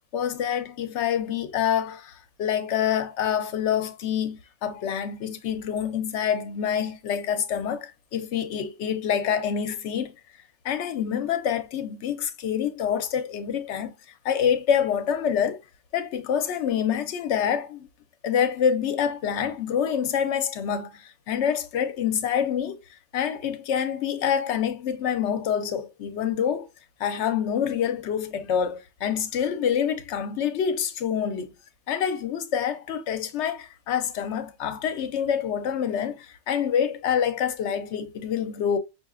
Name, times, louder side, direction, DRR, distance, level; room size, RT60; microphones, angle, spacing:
voice 1, 0.1-10.1 10.6-13.9 14.2-15.6 15.9-17.9 18.2-22.8 23.1-26.7 27.0-31.5 31.9-38.8, left 8 dB, 80° left, 0.9 m, -26 dB
5.6 x 2.5 x 2.4 m
omnidirectional pair, 1.2 m